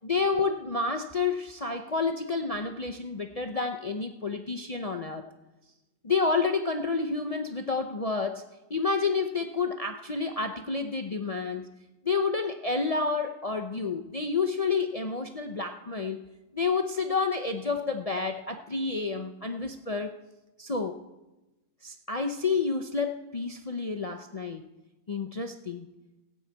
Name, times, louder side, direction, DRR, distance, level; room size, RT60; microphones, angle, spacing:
voice 1, 0.0-5.2 6.0-8.4 8.7-11.7 12.0-20.1 20.6-21.0 21.8-24.7 25.1-25.9, left 4 dB, 55° left, 5 dB, 0.4 m, -29 dB
17.0 x 5.7 x 8.2 m, 1.0 s
omnidirectional pair, 1.7 m